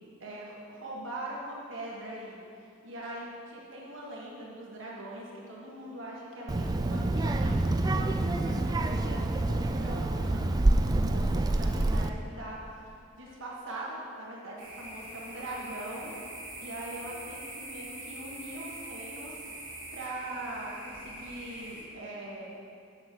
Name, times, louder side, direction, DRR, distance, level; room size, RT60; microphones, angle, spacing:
voice 1, 0.2-2.4 2.8-12.6 13.2-16.1 16.6-19.4 19.9-22.5, right 1 dB, 70° right, -4 dB, 1.6 m, -41 dB
Child speech kid speaking, 6.5-12.1, right 2 dB, 20° right, 0.3 m, -27 dB
sound 1, 14.6-21.8, right 1 dB, 40° right, 2.5 m, -43 dB
7.6 x 6.1 x 7.7 m, 2.5 s
head